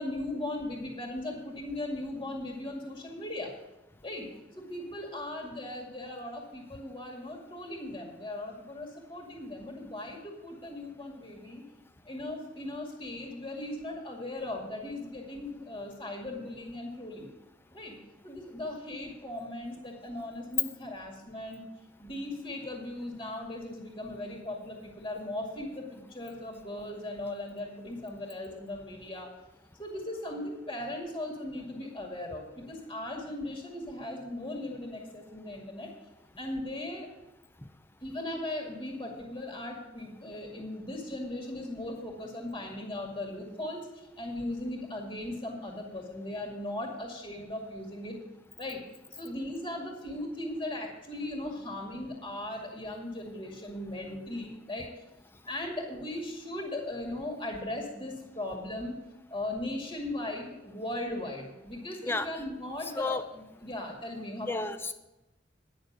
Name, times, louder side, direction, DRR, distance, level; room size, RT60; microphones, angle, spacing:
voice 1, 0.0-3.5 4.0-4.3 4.6-11.6 12.1-17.3 17.7-18.0 18.2-21.6 22.0-29.3 29.8-35.9 36.4-37.1 38.0-43.9 44.2-48.2 48.6-48.8 49.2-54.9 55.4-59.0 59.3-64.6, left 1 dB, 30° left, 0 dB, 2.2 m, -38 dB
voice 2, 64.5-64.9, left 2 dB, 10° left, 9 dB, 0.5 m, -31 dB
10.5 x 6.5 x 8.0 m, 0.97 s
head